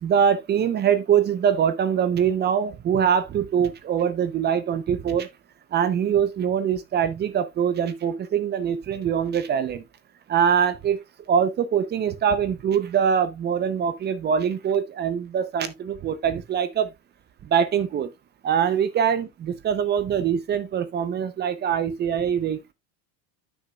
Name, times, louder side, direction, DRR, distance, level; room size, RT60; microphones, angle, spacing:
voice 1, 0.0-5.3 5.7-9.8 10.3-11.0 11.3-16.9 17.4-18.1 18.4-22.7, right 8 dB, 20° right, 0.6 m, -23 dB
10.5 x 6.3 x 2.3 m
supercardioid pair, 140°, 50 cm